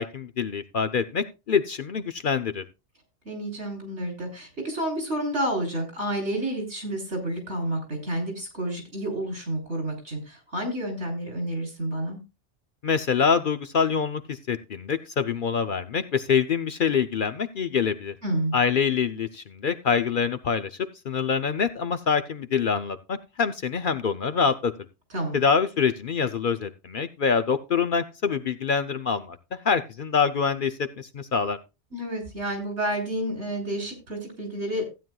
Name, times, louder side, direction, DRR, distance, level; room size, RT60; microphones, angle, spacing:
voice 1, 0.0-2.6 12.8-18.1 18.5-20.7 21.1-24.7 25.3-31.6, left 6 dB, 55° left, 10 dB, 0.7 m, -25 dB
voice 2, 3.3-12.2 18.2-18.6 25.1-25.4 31.9-34.8, right 1 dB, 70° right, 3 dB, 4.0 m, -30 dB
15.5 x 9.2 x 2.3 m, 0.26 s
omnidirectional pair, 1.2 m